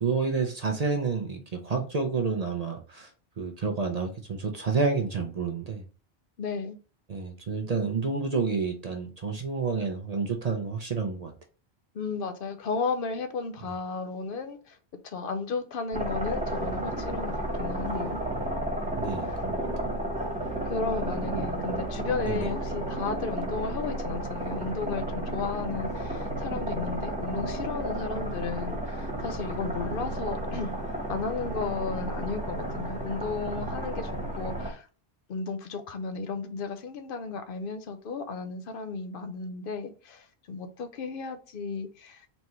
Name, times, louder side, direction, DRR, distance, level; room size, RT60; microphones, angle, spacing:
voice 1, 0.0-3.1 3.4-5.8 7.1-11.3 19.0-19.7 21.3-21.4 22.3-22.5, right 4 dB, 45° right, 0.6 m, -29 dB
voice 2, 6.4-6.8 11.9-14.8 15.0-18.2 19.2-19.4 20.6-30.7 31.1-34.9 35.3-42.3, left 4 dB, 60° left, 0.8 m, -34 dB
sound 1, 15.9-34.7, right 1 dB, 5° right, 1.2 m, -32 dB
4.2 x 3.4 x 3.0 m
omnidirectional pair, 1.1 m